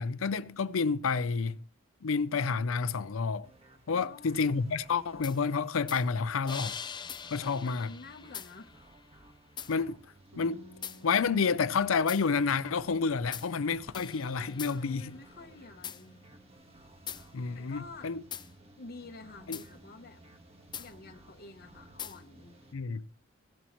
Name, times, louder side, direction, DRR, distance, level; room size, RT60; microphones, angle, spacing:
voice 1, 0.0-1.6 2.0-3.5 3.9-6.7 7.3-7.9 9.7-10.0 10.4-10.6 11.0-15.1 17.3-18.2 19.5-19.6 22.7-23.0, left 5 dB, 90° left, 0.5 m, -29 dB
sound 1, 3.4-22.7, right 1 dB, 30° right, 1.4 m, -57 dB
voice 2, 3.9-4.5 7.4-8.8 14.7-16.2 17.5-18.1 18.8-20.2 20.8-22.6, left 3 dB, 50° left, 0.9 m, -49 dB
sound 2, 5.2-5.4 5.9-6.0 6.5-9.0 9.6-9.7 10.8-11.0 12.1-12.3 13.3-13.5 13.9-16.0 17.1-17.3 18.3-18.5 19.5-19.7 20.7-20.9 22.0-22.2, left 8 dB, 20° left, 0.4 m, -42 dB
Bass guitar, 10.3-16.6, right 1 dB, 90° right, 7.8 m, -57 dB
16.5 x 11.0 x 3.0 m
head